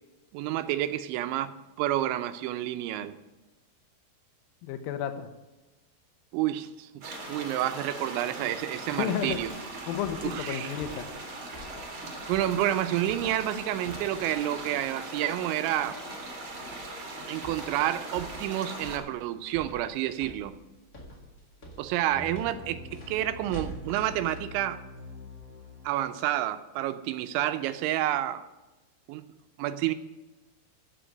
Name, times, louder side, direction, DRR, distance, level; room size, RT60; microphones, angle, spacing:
voice 1, 0.3-3.2 6.3-9.5 10.2-10.7 12.3-16.0 17.3-20.6 21.8-24.8 25.8-28.5 29.1-29.2 29.6-29.9, right 13 dB, 80° right, 11 dB, 2.9 m, -29 dB
voice 2, 4.6-5.3 9.0-9.4 9.9-11.1, left 9 dB, 80° left, 7 dB, 2.1 m, -32 dB
sound 1, 7.0-19.0, right 2 dB, 50° right, 1.6 m, -40 dB
sound 2, 8.9-24.5, right 1 dB, 55° left, 0.8 m, -48 dB
sound 3, 22.1-26.0, left 2 dB, 30° left, 2.3 m, -45 dB
14.0 x 5.2 x 9.3 m, 1.1 s
omnidirectional pair, 5.5 m